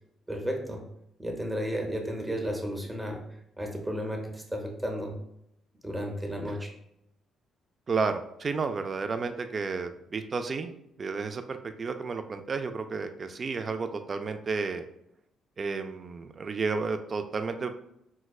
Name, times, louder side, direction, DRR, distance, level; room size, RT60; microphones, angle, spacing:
voice 1, 0.3-0.8 1.2-3.2 3.6-5.2 5.8-6.7, equal, 10° right, 1 dB, 0.7 m, -33 dB
voice 2, 7.9-10.7 11.0-14.8 15.6-17.7, right 4 dB, 40° right, 8 dB, 0.3 m, -32 dB
4.6 x 2.1 x 2.3 m, 0.79 s
cardioid pair, 90°, 0 cm